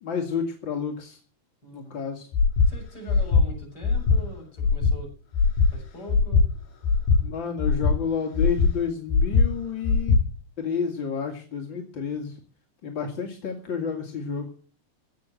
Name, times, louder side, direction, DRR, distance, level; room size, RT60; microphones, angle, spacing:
voice 1, 0.0-1.2 1.7-2.3 7.2-10.2 10.6-12.4 12.8-14.5, left 6 dB, 40° left, 2 dB, 2.0 m, -30 dB
voice 2, 1.6-2.0 2.7-5.1 5.7-6.5, right 1 dB, 25° left, 1 dB, 7.4 m, -42 dB
Breathing, 2.3-2.7 3.1-3.4 3.8-4.2 4.6-4.9 5.3-5.7 6.1-6.4 6.8-7.2 7.6-8.0 8.3-8.7 9.1-9.5 9.8-10.2, left 4 dB, 70° left, 6.7 m, -20 dB
15.5 x 9.3 x 7.7 m, 0.39 s
omnidirectional pair, 4.7 m